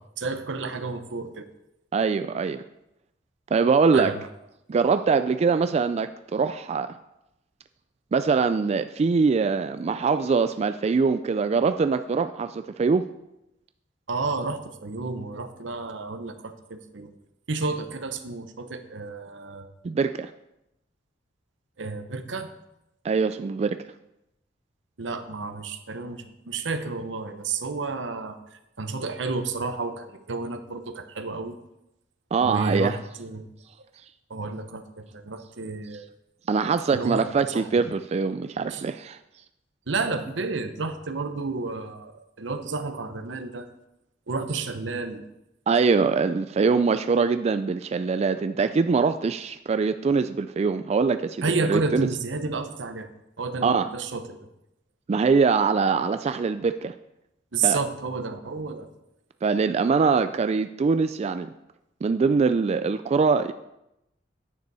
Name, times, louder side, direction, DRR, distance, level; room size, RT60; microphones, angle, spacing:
voice 1, 0.2-1.5 3.9-4.3 14.1-17.1 17.5-19.7 21.8-22.5 25.0-31.6 32.4-33.5 34.3-36.1 36.9-37.8 38.7-38.8 39.9-43.7 44.3-45.3 51.4-53.1 53.4-54.5 57.5-58.9, right 4 dB, 80° right, 9 dB, 0.9 m, -31 dB
voice 2, 1.9-2.6 3.5-4.1 4.7-6.9 8.1-13.0 19.8-20.3 23.0-23.8 32.3-33.0 36.5-39.2 45.7-52.1 53.6-53.9 55.1-56.9 57.6-57.8 59.4-61.5 62.0-63.5, right 5 dB, 35° right, 10 dB, 0.3 m, -23 dB
9.5 x 6.8 x 4.8 m, 0.87 s
head